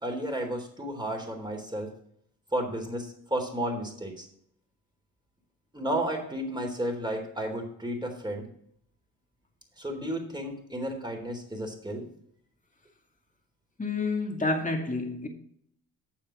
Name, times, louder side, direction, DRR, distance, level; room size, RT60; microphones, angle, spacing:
voice 1, 0.0-1.9 2.5-4.3 5.7-8.5 9.8-12.1, right 1 dB, 10° right, 3.4 m, -32 dB
voice 2, 13.8-15.3, left 3 dB, 20° left, 2.2 m, -29 dB
9.3 x 6.9 x 4.9 m
hypercardioid pair, 60°, 41 cm